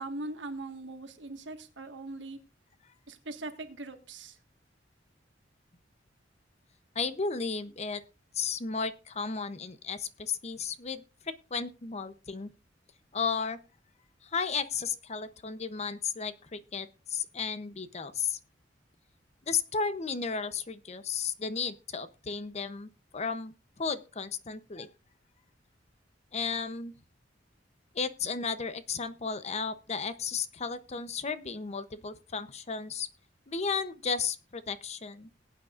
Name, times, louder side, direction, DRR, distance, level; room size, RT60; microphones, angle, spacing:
voice 1, 0.0-2.4 3.1-4.4, right 2 dB, 70° right, 6 dB, 1.6 m, -40 dB
voice 2, 6.9-8.0 8.3-12.5 13.1-13.6 14.2-18.4 19.5-24.9 26.3-26.9 27.9-33.1 33.5-35.3, left 5 dB, 35° left, 13 dB, 0.7 m, -34 dB
20.0 x 8.8 x 2.5 m, 0.30 s
head